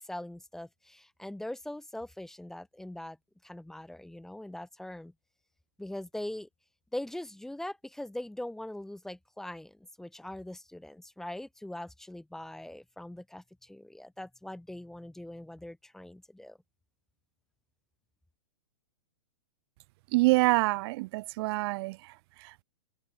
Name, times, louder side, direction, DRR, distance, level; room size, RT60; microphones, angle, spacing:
voice 1, 0.0-3.2 3.4-5.1 5.8-6.5 6.9-16.6, left 1 dB, ahead, 6.7 m, -41 dB
voice 2, 20.1-22.6, right 22 dB, 40° right, 6.9 m, -27 dB
open air
hypercardioid pair, 150°, 19 cm